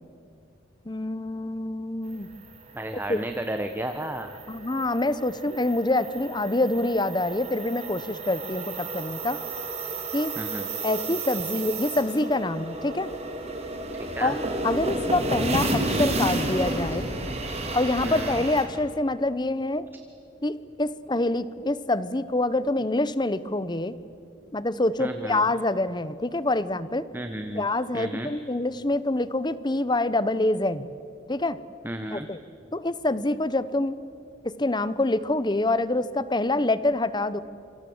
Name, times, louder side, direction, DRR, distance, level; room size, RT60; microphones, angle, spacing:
voice 1, 0.9-2.3 3.1-3.2 4.5-9.4 10.1-10.3 10.8-13.1 14.2-17.1 17.7-19.9 20.4-24.0 24.5-27.1 27.5-30.9 31.3-31.6 32.1-32.4 32.7-34.0 34.4-37.4, left 2 dB, 20° left, 15 dB, 0.8 m, -26 dB
sound 1, 2.2-18.6, right 2 dB, 30° right, 3.7 m, -32 dB
voice 2, 2.7-4.4 10.4-10.7 14.1-14.3 18.0-18.4 25.0-25.5 27.1-27.6 27.9-28.3 31.8-32.3, right 1 dB, 10° right, 6 dB, 1.1 m, -33 dB
28.0 x 25.0 x 7.9 m, 2.6 s
head